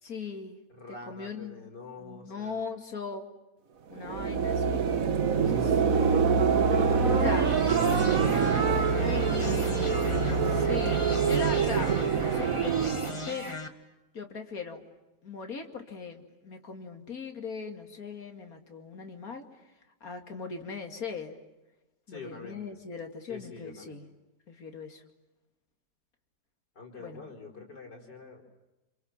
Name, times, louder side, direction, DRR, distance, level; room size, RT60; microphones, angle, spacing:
voice 1, 0.0-0.6 0.9-1.7 2.0-3.3 3.9-4.8 5.3-6.4 7.1-7.6 9.0-9.7 10.6-13.6 14.1-14.9 15.2-19.5 20.0-21.4 22.1-24.1 24.5-25.0 27.0-27.3, left 5 dB, 55° left, 5 dB, 2.9 m, -39 dB
voice 2, 0.7-2.6 6.7-8.7 9.9-10.6 22.1-22.6 23.3-24.0 26.8-28.4, left 3 dB, 75° left, 0 dB, 5.7 m, -44 dB
sound 1, 3.9-13.3, right 6 dB, 55° right, 1.7 m, -25 dB
sound 2, 6.8-13.7, left 2 dB, 20° left, 1.8 m, -39 dB
29.0 x 27.5 x 7.4 m, 1.0 s
omnidirectional pair, 1.8 m